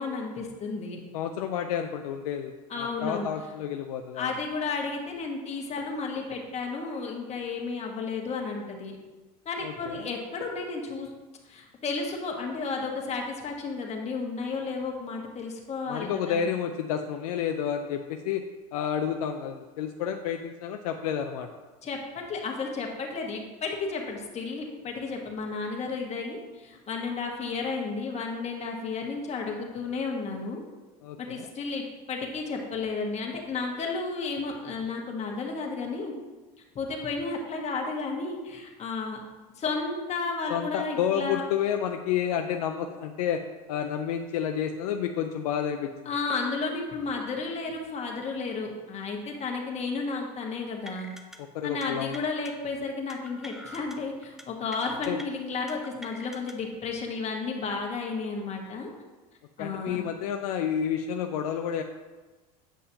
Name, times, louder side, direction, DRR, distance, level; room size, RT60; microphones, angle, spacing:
voice 1, 0.0-1.0 2.7-3.3 4.1-9.0 9.4-11.1 11.4-16.5 21.8-22.0 22.3-30.6 31.2-36.1 36.7-39.2 39.6-41.4 46.0-51.1 51.6-58.9 59.6-60.0, left 4 dB, 35° left, 1 dB, 1.4 m, -33 dB
voice 2, 1.1-4.3 9.6-10.1 15.9-18.4 18.7-21.5 31.0-31.5 40.5-43.4 43.7-45.9 51.5-52.1 55.1-55.2 59.6-61.8, left 8 dB, 75° left, 5 dB, 0.5 m, -30 dB
sound 1, 50.9-51.4 51.6-51.9 52.1-52.5 53.1-54.0 54.2-54.4 54.7-55.2 55.7-56.5, equal, ahead, 0.6 m, -44 dB
8.4 x 5.5 x 2.8 m, 1.2 s
hypercardioid pair, 85°, 19 cm